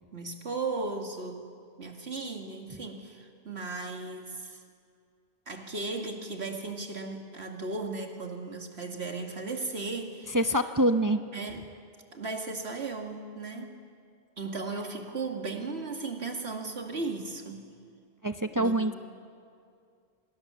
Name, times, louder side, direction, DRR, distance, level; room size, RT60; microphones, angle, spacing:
voice 1, 0.1-1.5 1.8-4.6 5.5-10.4 11.3-11.6 12.1-13.8 14.4-17.7 18.6-19.0, right 3 dB, 80° right, 3 dB, 2.6 m, -36 dB
voice 2, 10.3-11.2 18.2-18.9, right 1 dB, 20° right, 7 dB, 0.7 m, -25 dB
27.5 x 26.5 x 7.3 m, 2.3 s
omnidirectional pair, 1.1 m